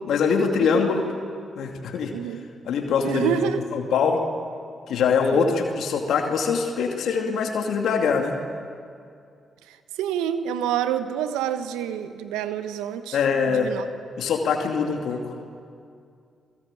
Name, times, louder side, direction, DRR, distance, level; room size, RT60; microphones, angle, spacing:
voice 1, 0.1-1.1 1.6-2.1 2.6-3.4 3.7-4.2 4.9-8.4 13.1-13.7 14.2-15.3, left 5 dB, 75° left, 3 dB, 2.5 m, -23 dB
voice 2, 2.1-2.5 3.0-3.6 5.3-5.5 10.0-13.2 13.5-13.9, right 9 dB, 85° right, 11 dB, 1.1 m, -27 dB
28.5 x 22.0 x 9.1 m, 2.3 s
hypercardioid pair, 40°, 0 cm